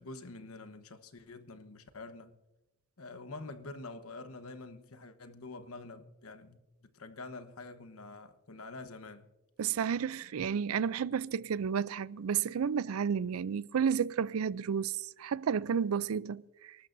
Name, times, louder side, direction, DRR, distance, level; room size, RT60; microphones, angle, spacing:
voice 1, 0.0-2.3 3.0-9.3, left 3 dB, 90° left, 1.2 m, -47 dB
voice 2, 9.6-16.8, right 7 dB, 85° right, 0.4 m, -32 dB
29.0 x 13.0 x 2.6 m
head